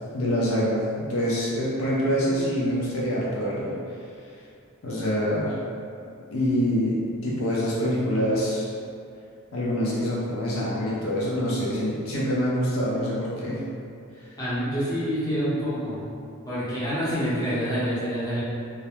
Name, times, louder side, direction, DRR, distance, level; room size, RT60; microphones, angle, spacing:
voice 1, 0.1-3.7 4.8-5.6 6.3-7.0 7.2-8.7 9.5-13.6, equal, 75° left, -6 dB, 0.5 m, -25 dB
voice 2, 14.4-16.0 16.5-18.4, equal, 20° left, -11 dB, 0.7 m, -27 dB
2.3 x 2.1 x 2.9 m, 2.4 s
head